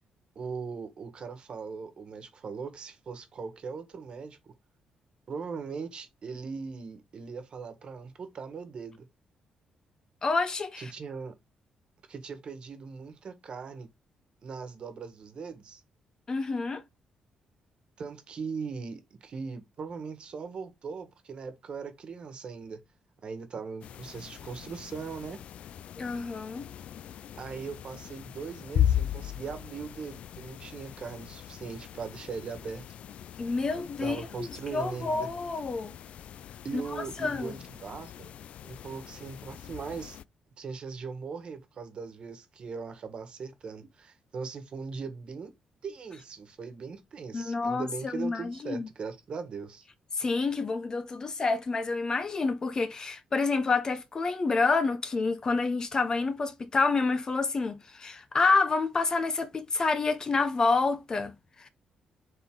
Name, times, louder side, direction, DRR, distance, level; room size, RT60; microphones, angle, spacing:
voice 1, 0.3-4.5 5.3-9.1 10.8-11.3 12.1-13.9 14.4-15.8 18.0-22.8 23.2-25.4 27.4-32.8 34.0-35.3 36.6-38.3 38.6-40.2 40.6-45.5 45.8-49.9, right 5 dB, 45° right, 1.6 m, -39 dB
voice 2, 10.2-10.9 16.3-16.8 26.0-26.7 33.4-35.9 36.7-36.8 37.2-37.6 47.3-48.9 50.1-61.7, left 4 dB, 30° left, 0.9 m, -28 dB
sound 1, 23.8-40.2, left 10 dB, 65° left, 0.3 m, -37 dB
7.5 x 3.9 x 3.8 m
cardioid pair, 125°, 2 cm